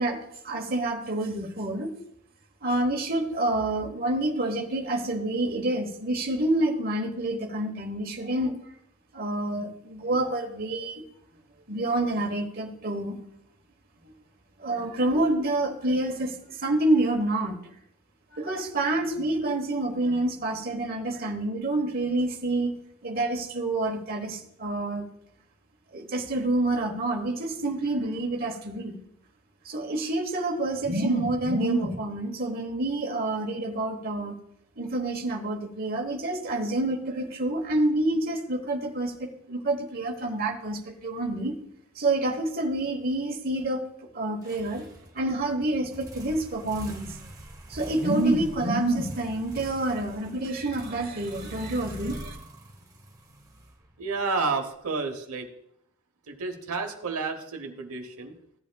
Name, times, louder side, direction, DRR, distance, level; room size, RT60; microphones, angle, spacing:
voice 1, 0.0-1.9 2.6-8.6 9.1-11.0 11.7-13.2 14.6-17.6 18.3-22.8 23.0-25.1 25.9-29.0 29.6-34.3 34.8-41.5 41.9-43.8 44.1-44.8 45.1-47.2 47.7-52.3, right 2 dB, 40° right, 3 dB, 1.1 m, -28 dB
sound 1, 44.4-54.2, right 1 dB, 15° right, 0.9 m, -44 dB
voice 2, 54.0-55.5 56.3-58.3, right 4 dB, 75° right, 4 dB, 1.0 m, -31 dB
14.5 x 8.2 x 2.3 m, 0.72 s
head